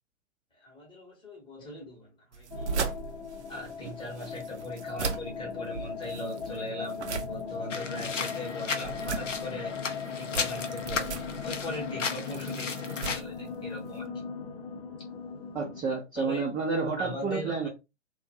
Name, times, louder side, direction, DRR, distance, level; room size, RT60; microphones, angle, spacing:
voice 1, 0.5-2.9 3.5-7.0 7.2-9.7 10.1-11.1 11.4-14.1 16.1-16.4 17.0-17.7, left 1 dB, 15° left, 1.1 m, -40 dB
wet slop plop, 2.3-14.1, right 5 dB, 65° right, 0.7 m, -38 dB
sound 1, 2.5-15.8, left 5 dB, 50° left, 0.8 m, -38 dB
sound 2, 7.7-13.2, left 5 dB, 90° left, 0.6 m, -35 dB
voice 2, 15.5-17.7, right 4 dB, 10° right, 0.5 m, -30 dB
2.6 x 2.3 x 2.6 m
figure-of-eight pair, 115°, 37 cm